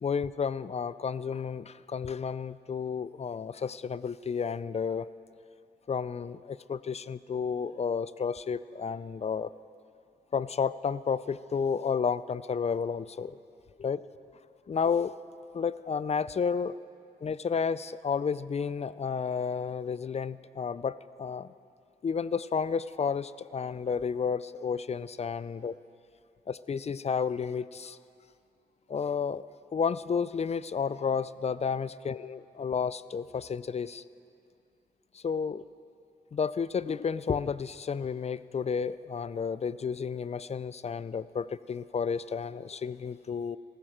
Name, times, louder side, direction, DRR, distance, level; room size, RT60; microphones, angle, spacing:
voice 1, 0.0-5.1 5.9-9.5 10.3-13.4 13.8-14.1 14.7-15.1 15.5-16.8 17.2-21.5 22.0-25.7 26.5-28.0 28.9-29.5 29.7-34.0 35.1-35.6 36.3-43.6, left 6 dB, 40° left, 17 dB, 0.4 m, -31 dB
15.0 x 13.5 x 4.5 m, 2.5 s
cardioid pair, 55°, 17 cm